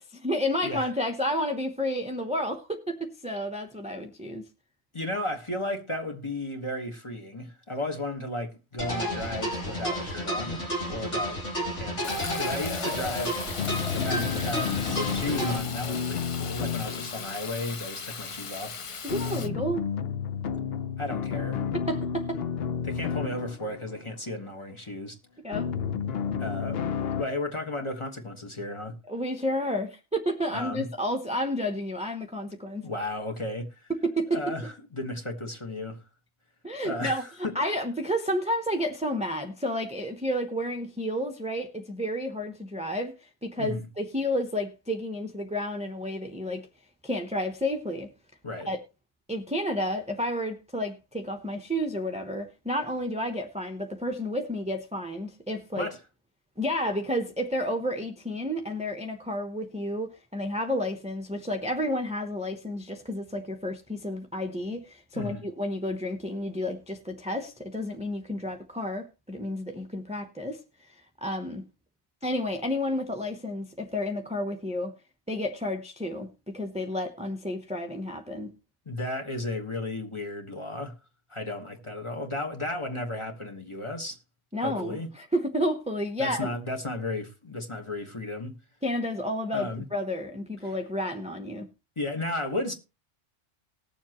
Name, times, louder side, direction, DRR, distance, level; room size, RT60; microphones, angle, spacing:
voice 1, 0.1-4.5 19.0-19.8 21.9-22.4 25.4-25.7 29.1-32.9 33.9-34.4 36.6-37.2 37.5-46.7 47.0-48.1 48.7-48.8 49.3-55.9 56.6-70.6 71.2-71.6 72.2-74.9 75.3-76.3 76.5-78.5 84.5-86.5 88.8-91.7, equal, 5° right, 0.8 m, -31 dB
voice 2, 4.9-11.4 11.7-13.4 13.9-18.8 19.2-19.6 21.0-21.6 22.8-25.2 26.4-29.0 30.5-30.9 32.8-33.9 34.3-36.0 36.8-37.6 43.6-43.9 48.4-48.7 55.7-56.0 65.1-65.4 78.8-80.9 81.3-84.2 84.6-85.1 86.2-88.6 89.5-89.9 90.6-90.7 92.0-92.7, left 2 dB, 25° left, 1.5 m, -34 dB
sound 1, 8.8-15.6, equal, 85° left, 3.6 m, -31 dB
Fill (with liquid), 12.0-19.5, left 5 dB, 40° left, 0.5 m, -38 dB
sound 2, 13.6-18.0 19.1-24.0 25.5-27.2, left 7 dB, 60° left, 0.9 m, -31 dB
19.5 x 7.2 x 3.0 m
omnidirectional pair, 1.2 m